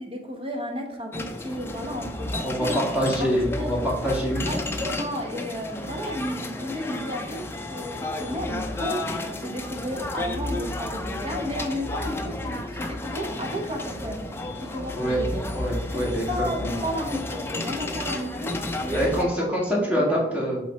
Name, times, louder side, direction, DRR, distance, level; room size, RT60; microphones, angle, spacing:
voice 1, 0.0-3.3 3.6-3.7 4.4-14.2 14.6-15.4 15.9-19.3 19.5-19.6 19.9-20.2, equal, 30° right, 2 dB, 1.2 m, -33 dB
sound 1, 1.1-19.2, left 1 dB, 15° left, 0.5 m, -32 dB
voice 2, 2.4-3.8 4.0-4.6 14.9-15.2 15.5-16.3 16.6-16.8 18.9-20.6, equal, 10° right, -4 dB, 2.0 m, -25 dB
7.4 x 3.7 x 4.3 m, 0.87 s
head